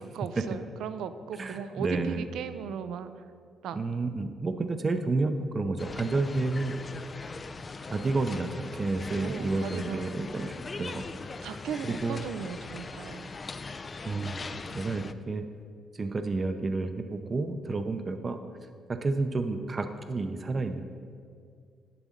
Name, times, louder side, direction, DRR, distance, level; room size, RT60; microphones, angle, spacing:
voice 1, 0.0-3.3 3.6-3.8 9.2-10.1 11.4-13.3, right 7 dB, 80° right, 11 dB, 0.5 m, -37 dB
voice 2, 1.4-2.2 3.7-6.7 7.9-11.0 11.8-12.3 14.1-14.5 14.7-15.4 15.9-18.4 18.9-20.8, right 3 dB, 35° right, 8 dB, 0.6 m, -30 dB
sound 1, 5.8-15.1, left 4 dB, 35° left, 0.4 m, -40 dB
11.0 x 4.0 x 7.3 m, 2.2 s
cardioid pair, 90°, 0 cm